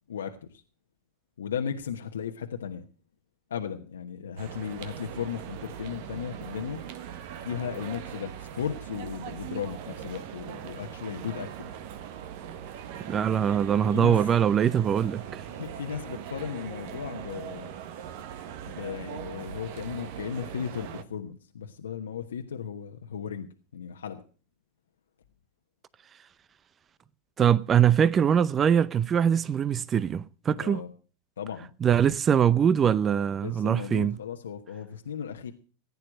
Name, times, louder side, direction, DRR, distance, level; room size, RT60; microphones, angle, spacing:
voice 1, 0.1-0.6 1.4-2.8 3.5-6.8 7.4-11.7 13.9-14.2 15.5-17.7 18.6-23.5 23.7-24.2 30.6-30.9 31.4-31.7 33.4-35.5, left 7 dB, 85° left, 1.2 m, -36 dB
sound 1, 4.4-21.0, right 9 dB, 65° right, 1.4 m, -40 dB
voice 2, 13.1-15.4 27.4-30.8 31.8-34.1, right 8 dB, 30° right, 0.6 m, -23 dB
16.0 x 9.6 x 6.3 m
hypercardioid pair, 95°, 0 cm